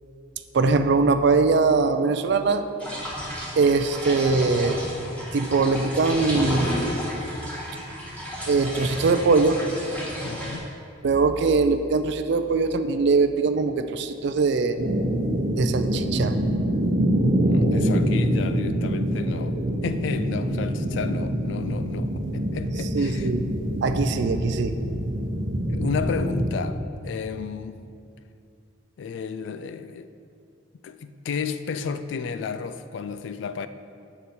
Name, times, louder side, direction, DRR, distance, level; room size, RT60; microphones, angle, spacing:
voice 1, 0.5-2.6 3.6-4.8 5.3-6.7 8.5-9.6 11.0-14.8 15.6-16.3 22.9-23.4 23.8-24.7, right 4 dB, 65° right, 8 dB, 0.4 m, -21 dB
sound 1, 2.8-10.6, equal, 5° left, 1.5 m, -32 dB
voice 2, 10.2-10.7 17.5-23.3 25.7-27.8 29.0-30.1 30.8-33.7, left 5 dB, 70° left, 11 dB, 0.3 m, -32 dB
sound 2, 14.8-26.5, equal, 80° right, 0.9 m, -25 dB
8.1 x 6.7 x 4.3 m, 2.5 s
head